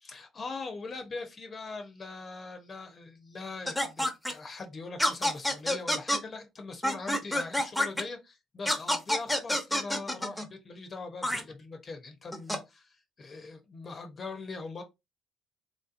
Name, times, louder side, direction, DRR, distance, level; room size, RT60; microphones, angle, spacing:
voice 1, 0.0-14.8, left 3 dB, 40° left, 0.8 m, -41 dB
sound 1, 3.7-4.3 5.0-6.2 6.8-8.0 8.6-10.5 11.2-11.4 12.3-12.6, left 1 dB, 5° left, 0.8 m, -27 dB
3.3 x 2.7 x 2.5 m
cardioid pair, 85°, 0 cm